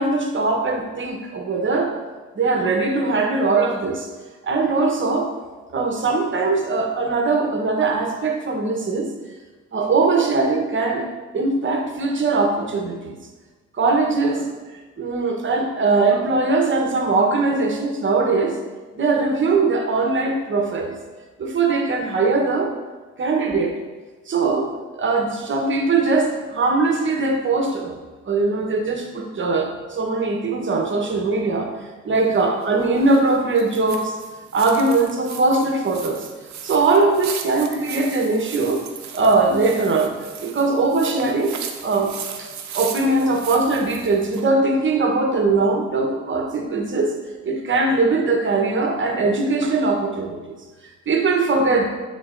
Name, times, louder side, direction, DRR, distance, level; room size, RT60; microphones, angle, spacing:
voice 1, 0.0-1.9 2.3-4.1 4.5-5.3 5.7-9.1 9.7-13.1 13.8-14.5 15.0-18.6 19.0-20.9 21.4-22.7 23.2-23.8 24.3-28.0 28.2-31.7 32.0-34.1 34.5-36.3 36.6-38.9 39.1-40.1 40.4-42.1 42.4-47.2 47.4-50.6 51.1-51.9, right 3 dB, 40° right, 3 dB, 1.0 m, -21 dB
sound 1, 32.1-44.5, right 7 dB, 65° right, 0.7 m, -37 dB
9.9 x 3.9 x 2.6 m, 1.3 s
cardioid pair, 90°, 30 cm